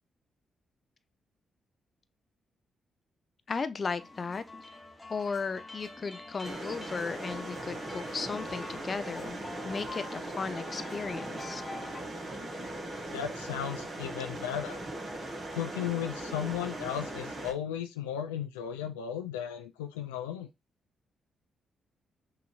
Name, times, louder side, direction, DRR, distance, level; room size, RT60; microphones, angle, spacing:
voice 1, 3.5-4.4 5.1-9.4 9.6-11.6, left 4 dB, 45° left, 0.6 m, -35 dB
sound 1, 4.0-12.0, left 2 dB, 20° left, 1.1 m, -46 dB
sound 2, 6.4-17.5, right 1 dB, 50° right, 1.9 m, -39 dB
voice 2, 13.1-14.8 15.5-20.5, left 9 dB, 85° left, 0.3 m, -35 dB
6.0 x 3.0 x 2.4 m
hypercardioid pair, 40°, 0 cm